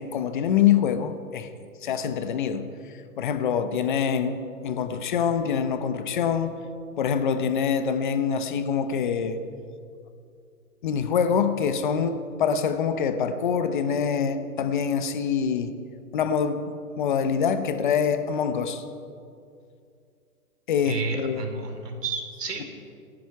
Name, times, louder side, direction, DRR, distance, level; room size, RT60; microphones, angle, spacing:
voice 1, 0.0-1.5 1.8-2.7 3.2-6.6 7.0-9.4 10.8-15.7 16.1-16.6 17.0-18.8 20.7-21.4, left 7 dB, 30° left, 10 dB, 0.9 m, -25 dB
voice 2, 20.8-22.6, right 4 dB, 80° right, 4 dB, 3.8 m, -31 dB
27.0 x 10.5 x 4.7 m, 2.4 s
hypercardioid pair, 155°, 47 cm